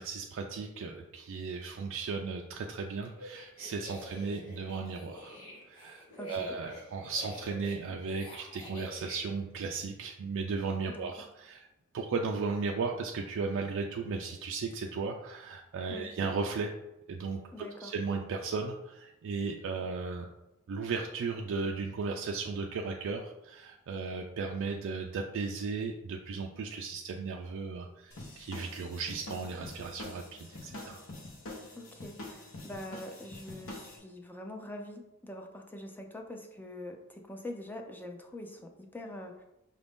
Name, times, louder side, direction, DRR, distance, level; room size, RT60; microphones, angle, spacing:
voice 1, 0.0-5.4 5.7-11.7 11.9-16.8 17.1-17.4 17.8-20.3 20.7-31.0, right 4 dB, 60° right, 1 dB, 0.3 m, -36 dB
sound 1, 3.1-9.2, left 1 dB, 85° left, 1.3 m, -48 dB
voice 2, 6.2-6.5 10.9-11.1 15.9-16.1 17.5-17.9 31.7-39.4, left 1 dB, 10° left, 2 dB, 0.4 m, -44 dB
sound 2, 28.1-34.0, left 1 dB, 65° left, 0.9 m, -45 dB
5.2 x 2.5 x 3.5 m, 0.93 s
head